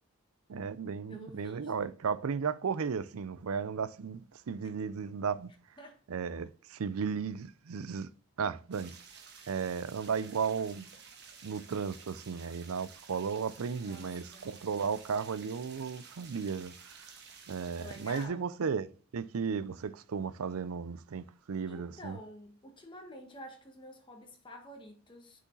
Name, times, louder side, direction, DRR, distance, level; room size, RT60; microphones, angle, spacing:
voice 1, 0.5-5.5 6.1-8.1 8.4-9.0 9.5-10.9 11.4-16.7 17.5-22.2, right 6 dB, 85° right, 0.5 m, -35 dB
voice 2, 1.1-2.0 5.8-6.0 13.8-14.5 17.8-18.5 21.7-25.4, left 1 dB, 20° left, 1.5 m, -49 dB
sound 1, 8.7-18.3, right 6 dB, 50° right, 1.4 m, -53 dB
6.8 x 5.0 x 3.9 m
head